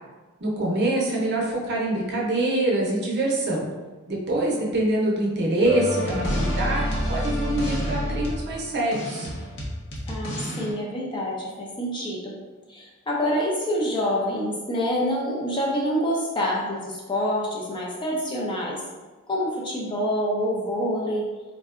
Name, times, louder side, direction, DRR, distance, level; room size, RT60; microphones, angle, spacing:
voice 1, 0.4-3.6 4.1-9.3, right 1 dB, 50° right, -3 dB, 0.6 m, -25 dB
sound 1, 5.6-10.7, equal, 55° left, 0.7 m, -28 dB
voice 2, 10.1-12.4 12.7-18.8 19.3-21.3, equal, 20° left, -4 dB, 0.4 m, -26 dB
3.6 x 2.1 x 2.4 m, 1.3 s
head